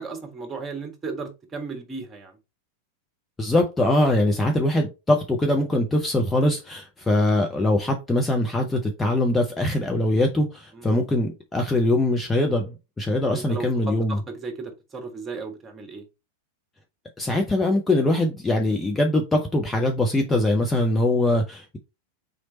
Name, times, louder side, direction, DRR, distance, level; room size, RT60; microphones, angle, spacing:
voice 1, 0.0-2.4 10.7-10.9 13.3-16.0, right 4 dB, 20° right, 1.4 m, -35 dB
voice 2, 3.4-14.2 17.2-21.8, left 1 dB, 10° left, 0.7 m, -22 dB
4.0 x 3.2 x 4.1 m
figure-of-eight pair, 90°, 0 cm